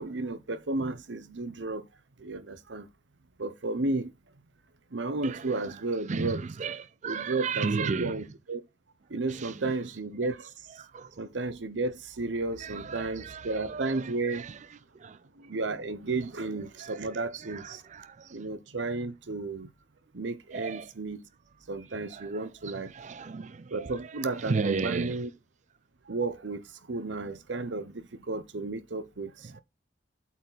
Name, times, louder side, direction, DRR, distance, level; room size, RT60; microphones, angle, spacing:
voice 1, 0.0-1.8 2.2-2.9 3.4-4.1 4.9-6.4 7.1-8.6 9.1-10.5 11.2-14.4 15.4-17.8 18.3-19.7 20.1-21.2 21.7-22.9 23.7-25.3 26.1-26.6 26.9-27.9 28.3-29.6, right 3 dB, 80° right, 0.8 m, -33 dB
voice 2, 5.2-8.3 9.3-10.0 10.7-11.1 12.6-14.7 15.0-15.2 16.5-17.1 17.3-18.4 20.5-20.9 22.1-25.2, right 4 dB, 40° right, 0.4 m, -35 dB
8.4 x 4.2 x 4.1 m
head